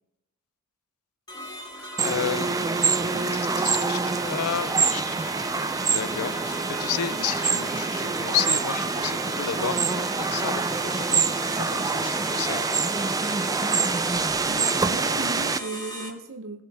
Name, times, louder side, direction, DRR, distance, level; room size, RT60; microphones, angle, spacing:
sound 1, 1.3-16.1, equal, 20° left, 1.9 m, -38 dB
voice 1, 1.7-2.7 3.1-5.3 5.9-11.3 11.6-12.7, left 9 dB, 70° left, 18 dB, 0.4 m, -32 dB
sound 2, 1.8-13.1, right 7 dB, 80° right, 1.7 m, -52 dB
sound 3, 2.0-15.6, right 4 dB, 15° right, 0.4 m, -26 dB
voice 2, 14.5-16.6, right 2 dB, 60° right, 5 dB, 0.8 m, -36 dB
19.0 x 7.1 x 3.5 m, 0.84 s
head